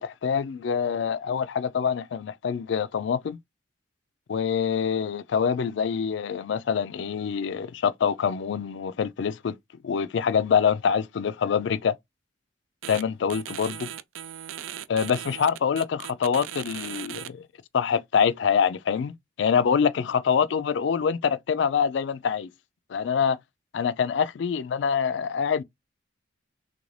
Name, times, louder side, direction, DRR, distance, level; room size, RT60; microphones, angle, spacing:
voice 1, 0.0-3.4 4.3-9.5 9.8-11.9 12.9-13.9 14.9-17.4 17.7-19.1 19.4-22.5 22.9-23.4 23.7-25.6, left 7 dB, 65° left, 0.3 m, -25 dB
sound 1, 12.8-13.0 13.3-17.3, right 11 dB, 90° right, 0.3 m, -38 dB
3.4 x 2.6 x 3.1 m
head